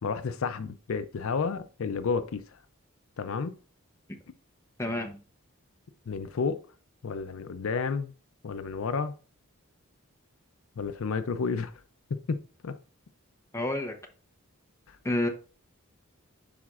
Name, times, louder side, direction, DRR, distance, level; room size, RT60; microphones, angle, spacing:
voice 1, 0.0-2.4 3.2-3.5 6.1-6.6 7.0-8.1 8.4-9.1 10.8-11.7 12.1-12.8 14.9-15.0, left 5 dB, 70° left, 0.5 m, -31 dB
voice 2, 4.8-5.2 13.5-13.9 15.0-15.3, left 1 dB, 15° left, 0.7 m, -29 dB
10.5 x 4.1 x 2.4 m
head